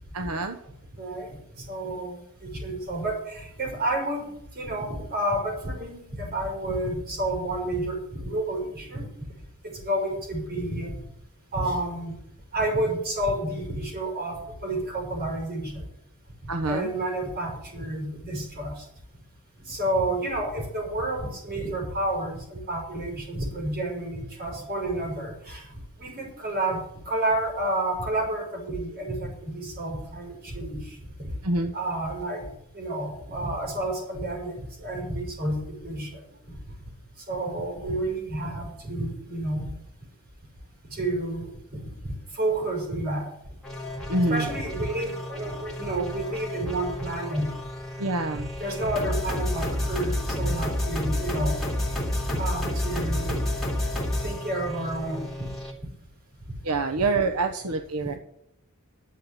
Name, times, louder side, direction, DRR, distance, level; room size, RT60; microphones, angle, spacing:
voice 1, 0.1-0.6 16.5-16.9 31.4-31.7 44.1-44.5 48.0-48.5 56.6-58.1, right 2 dB, 85° right, 6 dB, 1.0 m, -26 dB
voice 2, 1.0-1.3 1.6-9.1 9.6-10.9 11.5-12.1 12.5-15.8 16.4-18.8 19.7-25.7 26.0-31.3 31.7-32.5 32.7-34.5 34.8-36.1 37.3-39.7 40.9-41.8 42.3-43.3 44.3-47.5 48.6-51.5 52.1-53.3 54.2-55.5 57.0-57.1, right 1 dB, 45° right, 0 dB, 6.2 m, -30 dB
sound 1, 43.6-55.7, left 1 dB, ahead, 3.4 m, -30 dB
11.5 x 7.8 x 8.7 m, 0.76 s
head